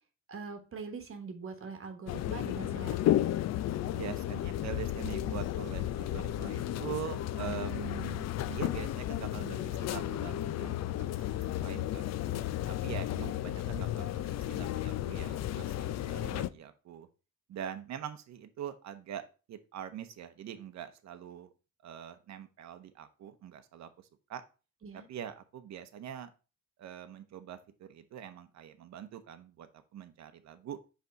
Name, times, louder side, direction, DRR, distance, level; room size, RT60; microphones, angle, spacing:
voice 1, 0.3-3.3 14.0-14.1 24.8-25.1, right 4 dB, 45° right, 6 dB, 1.2 m, -43 dB
sound 1, 2.1-16.5, left 13 dB, 60° left, 0.4 m, -33 dB
voice 2, 3.9-12.1 12.7-17.1 17.5-21.5 21.8-24.4 24.9-26.3 26.8-30.8, right 9 dB, 65° right, 8 dB, 0.8 m, -44 dB
5.4 x 3.4 x 5.1 m, 0.32 s
cardioid pair, 90°, 30 cm